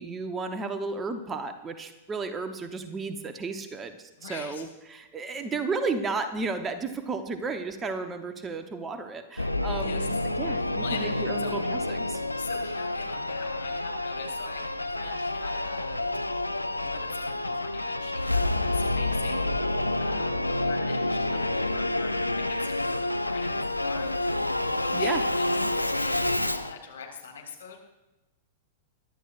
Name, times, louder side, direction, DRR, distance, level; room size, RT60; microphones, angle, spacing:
voice 1, 0.0-12.2 24.9-25.2, right 4 dB, 20° right, 8 dB, 1.0 m, -33 dB
voice 2, 4.2-4.6 5.3-5.4 9.6-10.3 10.6-11.6 12.3-16.1 16.7-27.8, left 6 dB, 65° left, 0 dB, 3.3 m, -42 dB
Singing / Musical instrument, 9.4-26.7, left 2 dB, 85° left, 0.5 m, -28 dB
23.0 x 12.0 x 2.6 m, 1.0 s
figure-of-eight pair, 95°, 0 cm